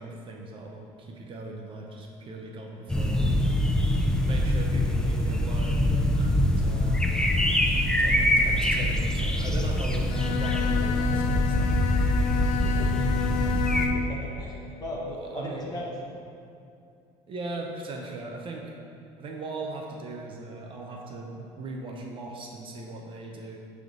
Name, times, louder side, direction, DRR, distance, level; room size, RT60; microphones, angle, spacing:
voice 1, 0.0-3.2 4.2-7.1 7.5-12.0 15.0-15.8 17.3-18.7 19.2-23.6, right 2 dB, 40° right, 0 dB, 0.6 m, -39 dB
sound 1, 2.9-13.9, left 1 dB, 5° left, 0.4 m, -24 dB
Bowed string instrument, 10.0-14.2, left 8 dB, 70° left, 0.4 m, -30 dB
voice 2, 12.6-13.0 13.3-13.5 13.8-15.0 15.3-15.9, left 1 dB, 30° left, -4 dB, 1.3 m, -38 dB
7.3 x 3.5 x 3.8 m, 2.6 s
cardioid pair, 120°, 14 cm